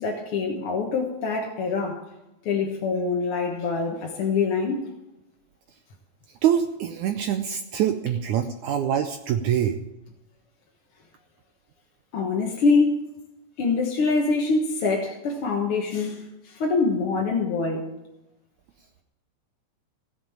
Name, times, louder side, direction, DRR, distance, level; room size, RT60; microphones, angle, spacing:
voice 1, 0.0-2.0 2.4-4.8 12.1-13.0 13.6-17.9, left 4 dB, 55° left, 1.6 m, -24 dB
voice 2, 6.4-9.8, right 9 dB, 85° right, 1.7 m, -24 dB
17.0 x 7.5 x 8.7 m
omnidirectional pair, 4.3 m